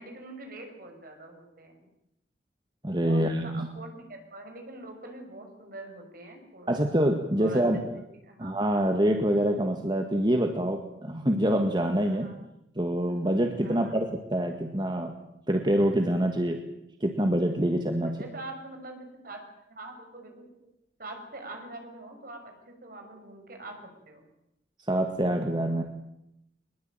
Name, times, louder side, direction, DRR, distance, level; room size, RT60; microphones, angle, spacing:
voice 1, 0.0-1.9 3.0-6.8 7.4-7.8 8.2-8.6 12.0-12.3 13.6-14.0 18.0-19.4 19.7-20.5 21.0-23.8 24.1-24.3, right 2 dB, 55° right, 4 dB, 6.2 m, -44 dB
voice 2, 2.8-3.7 6.7-7.8 8.4-12.3 12.8-15.2 15.5-16.6 17.0-18.2 24.9-25.8, right 1 dB, 25° right, 5 dB, 1.8 m, -26 dB
22.5 x 21.0 x 9.0 m, 0.83 s
head